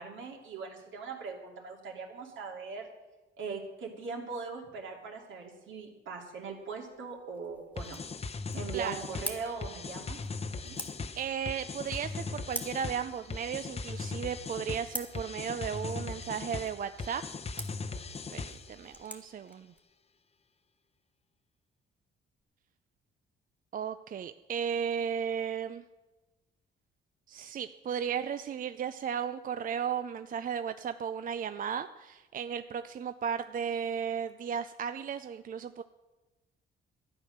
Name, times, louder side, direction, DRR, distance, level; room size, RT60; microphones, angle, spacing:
voice 1, 0.0-2.9 3.4-8.0 8.5-10.2 10.6-10.8, right 5 dB, 75° right, 1 dB, 2.7 m, -40 dB
sound 1, 6.4-19.8, right 1 dB, 5° right, 1.8 m, -47 dB
sound 2, 7.8-18.8, left 4 dB, 30° left, 0.8 m, -39 dB
voice 2, 10.7-17.2 18.3-19.7 23.7-25.8 27.3-35.8, right 7 dB, 45° right, 11 dB, 0.5 m, -35 dB
12.5 x 9.4 x 6.5 m, 1.1 s
cardioid pair, 90°, 20 cm